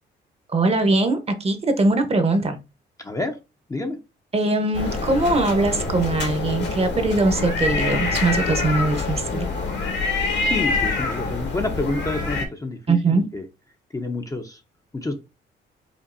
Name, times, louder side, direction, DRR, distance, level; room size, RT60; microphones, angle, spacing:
voice 1, 0.5-2.6 4.3-9.5 12.9-13.3, right 2 dB, 30° right, 8 dB, 0.8 m, -21 dB
voice 2, 3.0-3.4 3.7-4.0 10.4-13.4 13.9-14.6 14.9-15.1, left 2 dB, 15° left, 5 dB, 0.6 m, -28 dB
sound 1, 4.7-12.5, left 3 dB, 60° left, 1.4 m, -25 dB
5.1 x 2.6 x 2.6 m, 0.27 s
cardioid pair, 90°, 20 cm